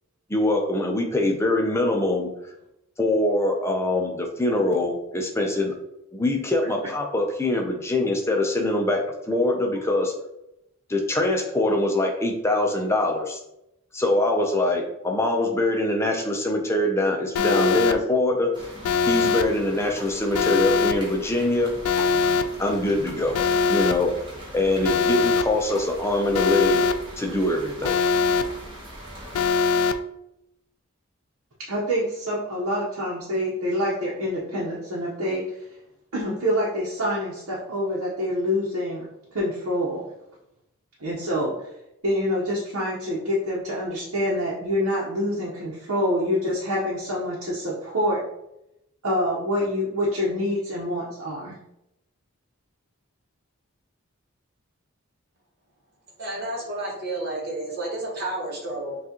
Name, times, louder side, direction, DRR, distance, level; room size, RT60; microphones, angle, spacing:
voice 1, 0.3-2.3 3.0-5.7 6.1-10.1 10.9-13.4 13.9-18.7 19.0-21.7 22.6-23.4 23.7-24.1 24.5-26.8 27.2-28.0, left 1 dB, 10° left, 2 dB, 0.5 m, -23 dB
Alarm, 17.4-17.9 18.8-19.4 20.3-20.9 21.8-22.4 23.3-23.9 24.8-25.4 26.3-26.9 27.8-28.4 29.3-29.9, left 5 dB, 90° left, 0.3 m, -21 dB
sound 1, 18.5-29.5, equal, 20° right, 1.0 m, -41 dB
voice 2, 31.7-35.4 36.1-39.0 39.3-40.1 41.0-41.5 42.0-48.2 49.0-51.5, equal, 75° right, -7 dB, 0.9 m, -26 dB
voice 3, 56.2-59.0, right 2 dB, 45° right, -3 dB, 1.3 m, -31 dB
5.9 x 2.4 x 2.9 m, 0.85 s
head